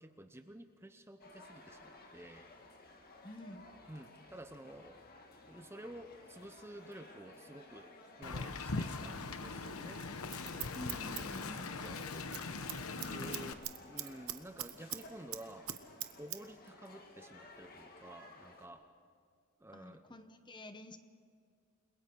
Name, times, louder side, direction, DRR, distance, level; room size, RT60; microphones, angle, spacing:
voice 1, 0.0-2.5 3.9-5.1 5.4-7.9 8.2-10.1 10.9-12.3 12.9-15.7 16.2-18.9 19.6-20.0, right 1 dB, 10° right, 8 dB, 0.7 m, -51 dB
sound 1, 1.2-18.7, left 2 dB, 45° left, 1.9 m, -57 dB
voice 2, 3.2-3.6 10.7-11.7 13.0-13.3 19.7-21.0, left 1 dB, 20° left, 9 dB, 0.9 m, -49 dB
Wind, 8.2-13.5, left 3 dB, 80° left, 1.0 m, -41 dB
Scissors, 10.0-12.0 12.2-12.4 12.7-15.0 15.3-16.4 16.7-16.8, right 14 dB, 80° right, 1.0 m, -41 dB
29.0 x 21.5 x 4.7 m, 2.2 s
head